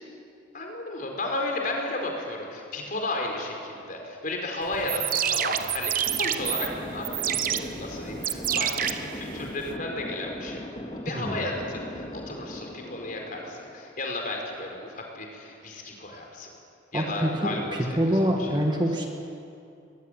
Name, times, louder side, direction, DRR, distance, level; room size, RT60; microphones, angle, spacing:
voice 1, 0.5-10.6 11.0-16.5 16.9-18.5, left 2 dB, 45° left, 1 dB, 4.9 m, -33 dB
sound 1, 4.7-9.7, right 9 dB, 45° right, 1.0 m, -28 dB
sound 2, 6.1-14.3, left 1 dB, 30° left, 2.3 m, -39 dB
voice 2, 16.9-17.3 17.7-19.1, equal, 25° right, 1 dB, 2.2 m, -25 dB
22.0 x 21.5 x 9.4 m, 2.5 s
head